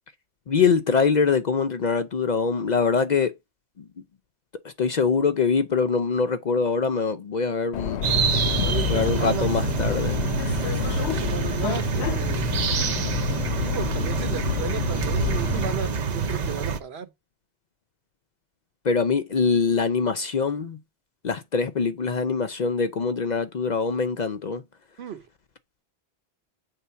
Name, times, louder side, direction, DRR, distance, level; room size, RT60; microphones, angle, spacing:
voice 1, 0.5-3.3 3.8-3.9 4.6-8.0 8.9-10.2 18.8-20.8 21.2-24.6, left 5 dB, 50° left, 0.6 m, -23 dB
Subway metro underground, 7.7-15.7, left 9 dB, 80° left, 0.9 m, -29 dB
sound 1, 8.0-16.8, right 5 dB, 45° right, 0.7 m, -26 dB
voice 2, 8.6-9.5 11.0-12.5 13.6-17.1 25.0-25.2, right 7 dB, 70° right, 1.1 m, -34 dB
8.1 x 3.6 x 5.6 m
omnidirectional pair, 1.1 m